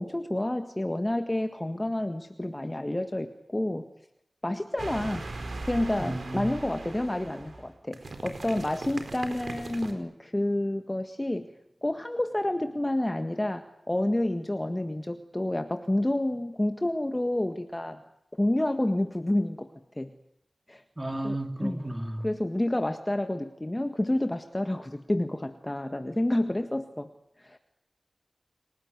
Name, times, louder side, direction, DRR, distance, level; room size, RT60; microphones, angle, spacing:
voice 1, 0.0-3.9 4.4-5.2 5.7-11.5 11.8-18.0 18.3-19.7 20.0-20.1 20.7-20.8 21.2-21.9 22.2-27.1 27.4-27.6, left 1 dB, 20° left, 1.7 m, -29 dB
sound 1, 4.8-9.9, right 3 dB, 75° right, 4.7 m, -39 dB
voice 2, 6.0-6.5 21.0-22.3, right 1 dB, 25° right, 3.2 m, -33 dB
30.0 x 18.5 x 9.4 m
wide cardioid pair, 55°, 0 cm